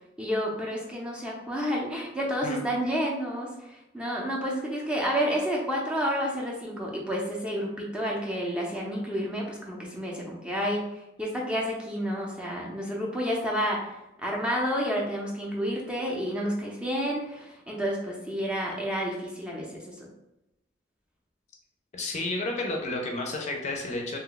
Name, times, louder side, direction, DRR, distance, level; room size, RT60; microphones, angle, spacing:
voice 1, 0.2-10.8 11.2-13.9 14.2-20.1, equal, 5° right, -2 dB, 0.6 m, -30 dB
voice 2, 21.9-24.2, left 2 dB, 40° left, 1 dB, 0.5 m, -31 dB
3.0 x 2.2 x 3.8 m, 0.90 s
head